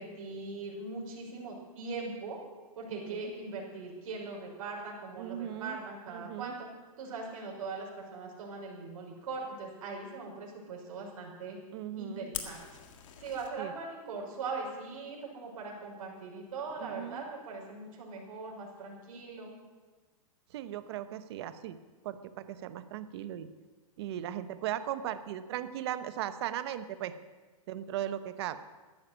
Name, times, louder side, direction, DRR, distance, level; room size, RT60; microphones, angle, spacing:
voice 1, 0.0-2.4 2.8-6.7 7.0-11.6 12.0-12.6 13.2-19.6, right 4 dB, 60° right, -2 dB, 5.5 m, -40 dB
voice 2, 2.9-3.3 5.2-5.8 6.1-6.5 11.7-12.3 13.6-13.7 16.8-17.2 20.5-21.8 22.0-23.5 24.0-27.1 27.7-28.6, right 11 dB, 45° right, 12 dB, 0.9 m, -37 dB
Fire, 12.3-13.5, left 9 dB, 55° left, 1.9 m, -42 dB
13.5 x 10.5 x 8.2 m, 1.3 s
hypercardioid pair, 160°, 19 cm